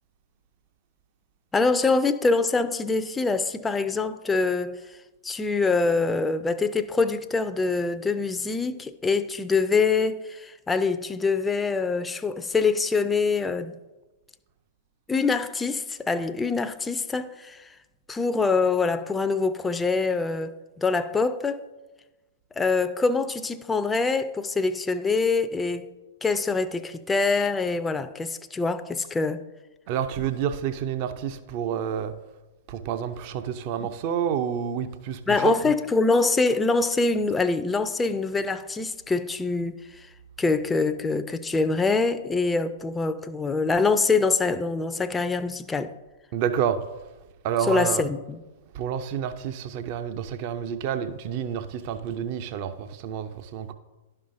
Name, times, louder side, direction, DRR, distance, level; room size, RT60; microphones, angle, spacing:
voice 1, 1.5-4.8 5.2-13.7 15.1-17.7 18.1-21.7 22.6-25.9 26.2-29.4 35.3-40.1 40.4-45.9 47.7-48.4, left 4 dB, 10° left, 0.4 m, -24 dB
voice 2, 29.9-32.1 32.7-35.7 46.3-46.8 47.4-48.0 48.7-53.7, right 8 dB, 45° right, 0.5 m, -29 dB
11.5 x 5.4 x 2.6 m
figure-of-eight pair, 105°, 0 cm